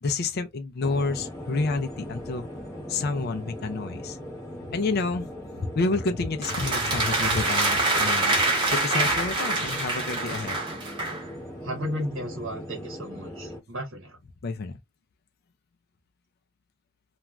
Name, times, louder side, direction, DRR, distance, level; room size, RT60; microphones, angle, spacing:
voice 1, 0.0-2.5 2.9-4.2 4.7-5.3 5.6-8.4 8.7-10.6 14.4-14.8, left 3 dB, 50° left, 0.4 m, -29 dB
sound 1, 0.8-13.6, equal, 15° left, 0.9 m, -39 dB
sound 2, 6.4-11.2, right 2 dB, 25° right, 0.9 m, -25 dB
voice 2, 11.6-14.2, equal, 65° right, 0.9 m, -34 dB
2.5 x 2.2 x 3.0 m
head